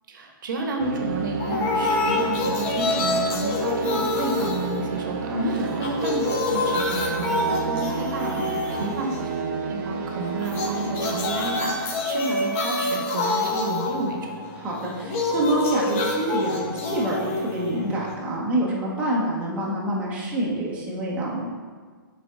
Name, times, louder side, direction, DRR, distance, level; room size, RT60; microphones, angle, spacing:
voice 1, 0.1-9.2 9.7-14.2, right 2 dB, 60° right, 2 dB, 1.0 m, -31 dB
sound 1, 0.8-19.0, right 5 dB, 40° right, 0.6 m, -33 dB
sound 2, 1.4-5.4 5.7-9.4 10.4-18.4, left 2 dB, 35° left, 0.8 m, -27 dB
voice 2, 5.3-5.8 8.4-8.8 14.6-21.5, right 1 dB, 10° right, -5 dB, 0.9 m, -27 dB
6.2 x 4.2 x 3.7 m, 1.5 s
hypercardioid pair, 150°, 12 cm